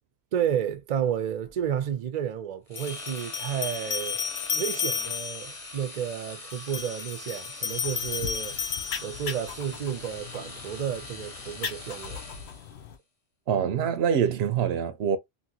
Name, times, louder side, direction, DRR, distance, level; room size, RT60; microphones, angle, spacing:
voice 1, 0.3-4.2 4.5-8.6 9.0-12.2, right 9 dB, 50° right, 0.5 m, -31 dB
sound 1, 1.5-1.6 2.8-5.6 6.5-9.6, left 6 dB, 55° left, 0.3 m, -33 dB
sound 2, 2.7-12.8, left 3 dB, 35° left, 0.9 m, -43 dB
sound 3, 7.7-13.0, left 7 dB, 80° left, 0.9 m, -40 dB
voice 2, 13.5-15.2, right 8 dB, 80° right, 0.8 m, -25 dB
2.8 x 2.7 x 2.7 m
omnidirectional pair, 1.1 m